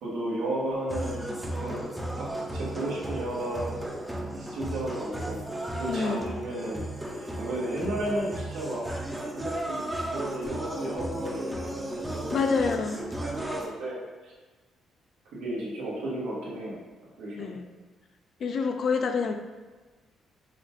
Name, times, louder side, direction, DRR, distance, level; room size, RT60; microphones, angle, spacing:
voice 1, 0.0-1.8 2.2-3.7 4.3-5.4 5.7-6.8 7.1-8.9 9.3-12.4 12.9-14.0 14.2-14.3 15.2-16.8 17.2-17.6, right 1 dB, 90° right, -5 dB, 1.1 m, -34 dB
sound 1, 0.9-13.7, right 1 dB, 10° right, 0.5 m, -35 dB
voice 2, 5.9-6.2 12.3-13.0 17.4-17.7 18.4-19.3, left 5 dB, 55° left, 5 dB, 0.4 m, -27 dB
4.9 x 2.1 x 2.7 m, 1.3 s
cardioid pair, 90°, 0 cm